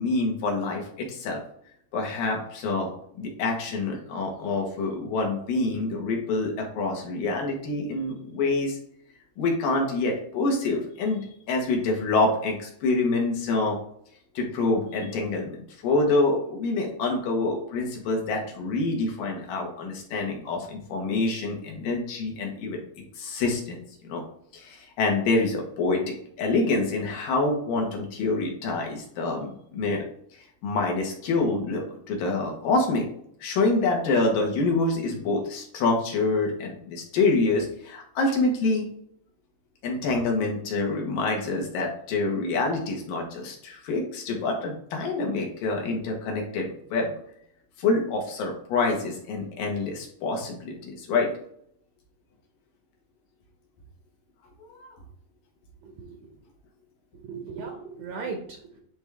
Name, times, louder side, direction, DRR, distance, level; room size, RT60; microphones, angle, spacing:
voice 1, 0.0-1.4 1.9-8.8 9.4-13.8 14.3-22.8 23.2-24.2 24.5-30.0 30.6-33.1 33.4-38.9 39.8-47.1 47.8-51.3, left 3 dB, 75° left, 1 dB, 3.0 m, -26 dB
voice 2, 55.8-56.2 57.2-58.8, right 5 dB, 70° right, 2 dB, 1.7 m, -37 dB
9.9 x 3.4 x 3.5 m, 0.67 s
omnidirectional pair, 4.1 m